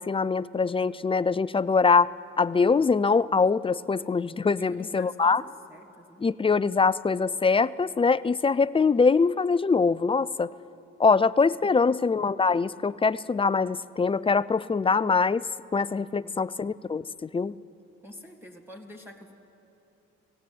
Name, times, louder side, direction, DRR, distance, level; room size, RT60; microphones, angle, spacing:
voice 1, 0.0-2.1 2.4-5.4 6.2-10.5 11.0-15.4 15.7-17.5, left 4 dB, 20° left, 17 dB, 0.4 m, -23 dB
voice 2, 4.3-6.3 11.9-12.0 16.1-16.5 18.0-19.3, left 1 dB, 5° right, 1 dB, 2.0 m, -47 dB
18.5 x 15.5 x 9.4 m, 2.9 s
cardioid pair, 90°, 30 cm